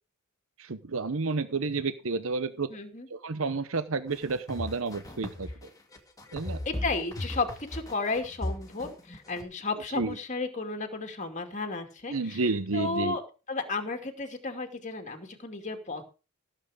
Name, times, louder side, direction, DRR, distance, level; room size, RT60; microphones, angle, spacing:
voice 1, 0.6-2.7 3.1-5.5 6.3-6.6 9.9-10.1 12.1-13.2, right 3 dB, 65° right, 13 dB, 0.8 m, -30 dB
voice 2, 2.7-3.1 6.6-13.2 13.5-16.0, left 3 dB, 35° left, 4 dB, 2.4 m, -33 dB
sound 1, 4.1-9.4, left 1 dB, 15° left, 2.4 m, -36 dB
16.5 x 7.9 x 5.0 m, 0.33 s
head